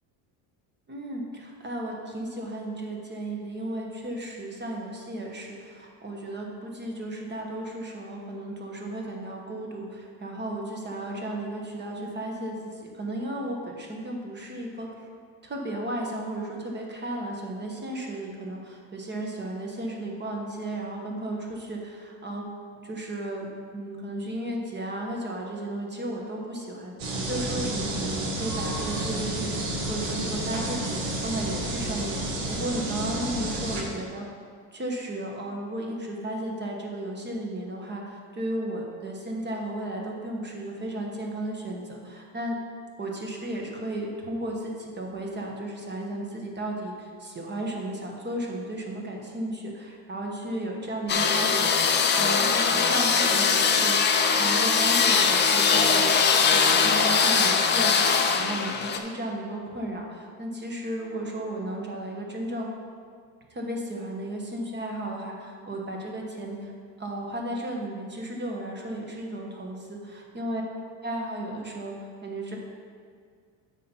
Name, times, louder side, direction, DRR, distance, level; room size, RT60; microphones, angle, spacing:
voice 1, 0.9-15.1 15.4-22.5 22.8-23.5 23.7-26.9 27.2-34.3 34.7-42.6 43.0-54.0 54.4-56.1 56.5-58.0 58.3-62.7 63.5-66.7 67.0-70.0 70.3-70.6 71.0-72.6, right 1 dB, 25° right, 0 dB, 1.2 m, -34 dB
sound 1, 27.0-33.8, right 1 dB, 80° right, 1.7 m, -30 dB
sound 2, 51.1-59.0, left 5 dB, 25° left, 0.5 m, -21 dB
8.2 x 5.6 x 4.5 m, 2.1 s
cardioid pair, 130°, 43 cm